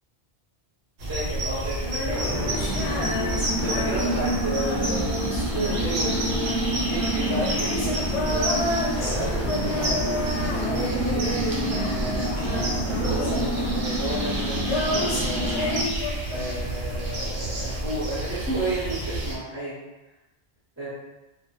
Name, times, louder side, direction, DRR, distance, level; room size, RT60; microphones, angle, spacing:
sound 1, 1.0-19.4, right 1 dB, 85° right, 0.9 m, -30 dB
voice 1, 1.1-2.5 3.6-5.1 5.5-8.6 9.0-10.3 10.6-15.8 16.3-19.8 20.8-20.9, right 1 dB, 15° right, -10 dB, 0.5 m, -32 dB
Female singing, 1.8-12.1 12.4-16.8, left 1 dB, 90° left, 1.1 m, -31 dB
sound 2, 2.1-15.8, equal, 50° left, 0.7 m, -30 dB
2.2 x 2.1 x 2.8 m, 1.0 s
omnidirectional pair, 1.1 m